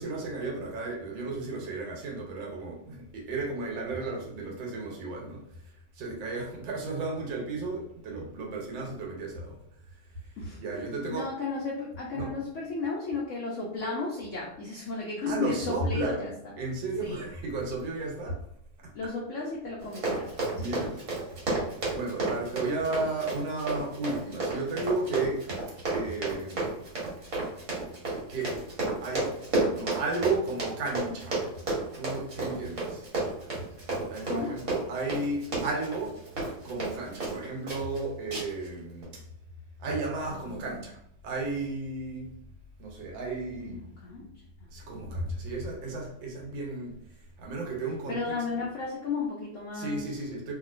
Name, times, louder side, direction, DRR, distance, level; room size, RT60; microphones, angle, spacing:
voice 1, 0.0-5.4 5.9-9.6 10.6-11.3 12.1-12.3 15.3-18.4 18.8-18.9 20.5-21.0 21.9-26.7 28.3-28.6 29.0-31.5 32.0-33.1 34.1-36.2 36.6-39.2 39.8-41.0 41.2-42.3 42.8-43.9 44.7-48.7 49.7-50.5, right 3 dB, 75° right, -1 dB, 1.5 m, -34 dB
voice 2, 11.1-16.3 17.0-17.2 18.9-20.3 20.7-20.8 34.3-34.6 40.3-40.8 43.7-44.2 48.1-50.0, left 3 dB, 80° left, -4 dB, 0.6 m, -34 dB
Run, 19.8-37.4 37.7-38.0 38.3-38.7 39.0-39.1, right 2 dB, 50° right, 1.3 m, -32 dB
2.9 x 2.8 x 2.4 m, 0.73 s
omnidirectional pair, 2.1 m